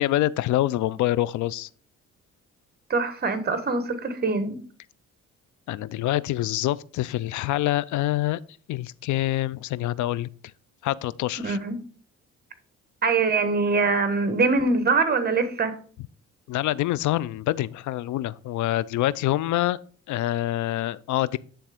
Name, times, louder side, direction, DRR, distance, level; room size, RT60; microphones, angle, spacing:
voice 1, 0.0-1.7 5.7-8.4 8.7-10.3 10.8-11.6 16.5-19.8 20.1-21.4, left 15 dB, 75° left, 0.5 m, -26 dB
voice 2, 2.9-4.6 11.4-11.8 13.0-15.8, right 4 dB, 30° right, 1.2 m, -23 dB
10.0 x 3.5 x 4.9 m
cardioid pair, 90°, 30 cm